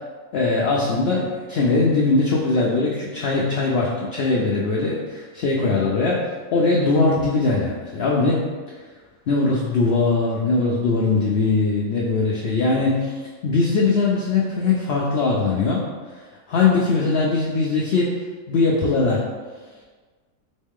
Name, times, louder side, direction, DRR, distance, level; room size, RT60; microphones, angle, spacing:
voice 1, 0.3-8.4 9.3-15.8 16.5-18.1 18.5-19.2, left 3 dB, 65° left, -3 dB, 0.6 m, -21 dB
3.6 x 3.2 x 3.6 m, 1.4 s
omnidirectional pair, 1.5 m